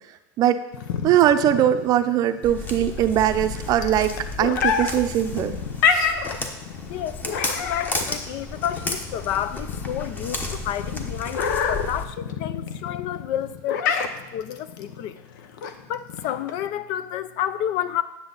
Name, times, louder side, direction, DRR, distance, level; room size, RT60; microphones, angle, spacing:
sound 1, 0.7-16.7, left 6 dB, 75° left, 0.8 m, -28 dB
voice 1, 1.0-5.6, right 11 dB, 40° right, 9 dB, 0.6 m, -21 dB
Walk footsteps, 2.4-12.0, left 2 dB, 15° left, 1.0 m, -33 dB
voice 2, 6.9-14.0 14.3-15.2 15.9-18.0, left 10 dB, 50° left, 14 dB, 0.5 m, -30 dB
9.8 x 7.0 x 3.9 m, 0.93 s
supercardioid pair, 130°, 10 cm